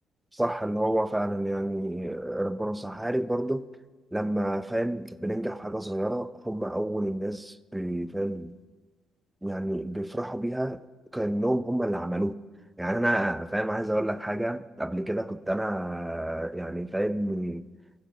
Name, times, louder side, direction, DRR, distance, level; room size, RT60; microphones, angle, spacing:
voice 1, 0.3-3.7 4.1-8.6 9.4-10.8 11.1-12.4 12.8-17.7, right 1 dB, 10° right, 0.5 m, -29 dB
16.0 x 6.5 x 5.7 m
cardioid pair, 90°, 0 cm